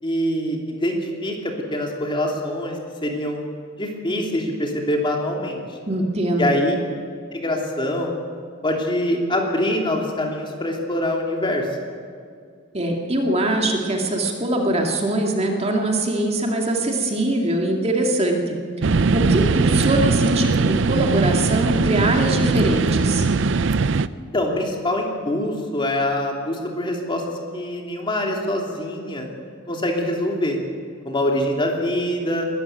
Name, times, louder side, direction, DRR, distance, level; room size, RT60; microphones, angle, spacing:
voice 1, 0.0-3.4 3.8-5.6 6.4-6.8 7.3-8.1 8.6-11.7 24.3-27.2 27.5-29.3 29.7-30.6 31.0-32.5, left 1 dB, 25° left, 1 dB, 3.0 m, -24 dB
voice 2, 5.9-6.5 12.7-23.3, right 1 dB, 30° right, 1 dB, 2.3 m, -22 dB
sound 1, 18.8-24.1, right 4 dB, 65° right, 0.6 m, -20 dB
22.0 x 13.5 x 9.2 m, 2.2 s
head